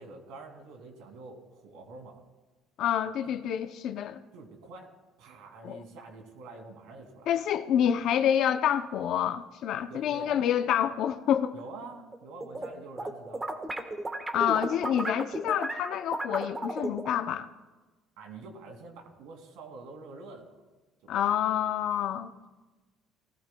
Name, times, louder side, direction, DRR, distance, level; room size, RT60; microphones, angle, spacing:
voice 1, 0.0-2.2 3.3-3.4 4.3-4.9 5.2-7.3 9.9-10.4 11.5-13.5 18.2-20.5 21.2-21.3, right 3 dB, 85° right, 2.5 m, -46 dB
voice 2, 2.8-4.2 5.6-5.8 7.3-11.5 14.3-17.5 21.1-22.3, left 9 dB, 60° left, 0.5 m, -27 dB
sound 1, 12.1-12.7 13.0-17.2, right 2 dB, 15° right, 1.3 m, -34 dB
18.5 x 14.0 x 2.3 m
cardioid pair, 125°, 0 cm